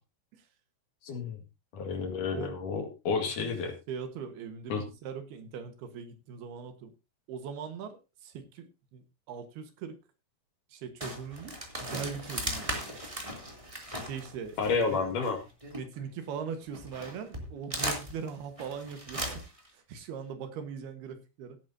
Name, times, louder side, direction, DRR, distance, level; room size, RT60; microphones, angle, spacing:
voice 1, 1.0-1.4 1.7-3.7 4.7-4.8 14.6-15.4, left 5 dB, 55° left, 4 dB, 3.1 m, -30 dB
voice 2, 3.9-6.9 7.3-8.7 8.9-10.0 10.7-13.0 14.0-15.0 15.7-19.4 19.7-21.6, right 6 dB, 70° right, 8 dB, 3.3 m, -40 dB
sound 1, 11.0-16.2 16.7-19.7, equal, 10° right, 2.4 m, -38 dB
17.0 x 9.7 x 2.8 m, 0.27 s
omnidirectional pair, 4.8 m